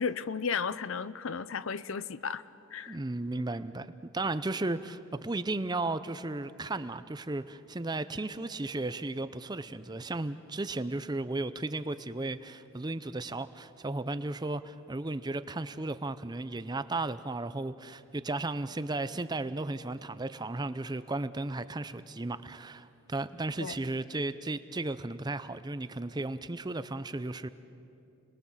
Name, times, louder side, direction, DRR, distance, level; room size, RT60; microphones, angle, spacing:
voice 1, 0.0-2.4 2.7-3.0 23.6-23.7, left 5 dB, 60° left, 15 dB, 0.6 m, -34 dB
voice 2, 2.9-27.5, right 2 dB, 20° right, 13 dB, 0.5 m, -35 dB
30.0 x 21.0 x 7.3 m, 2.7 s
head